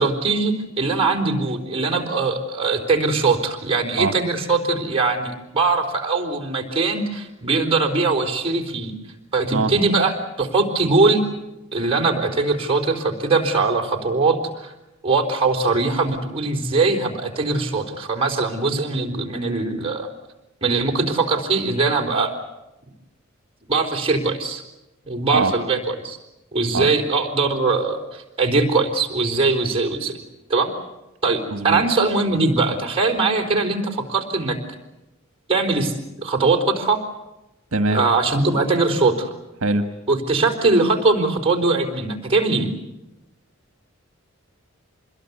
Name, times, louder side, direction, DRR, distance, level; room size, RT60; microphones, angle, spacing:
voice 1, 0.0-8.9 9.3-11.2 11.7-14.7 15.0-20.1 20.6-22.3 23.7-24.6 25.1-26.2 26.5-30.1 30.5-30.7 31.2-34.6 35.5-37.0 37.9-39.3 40.1-42.7, right 3 dB, 25° right, 1 dB, 4.2 m, -21 dB
voice 2, 31.5-31.8 37.7-38.0 39.6-39.9, right 3 dB, 70° right, 7 dB, 1.5 m, -21 dB
26.5 x 21.5 x 8.3 m, 0.95 s
head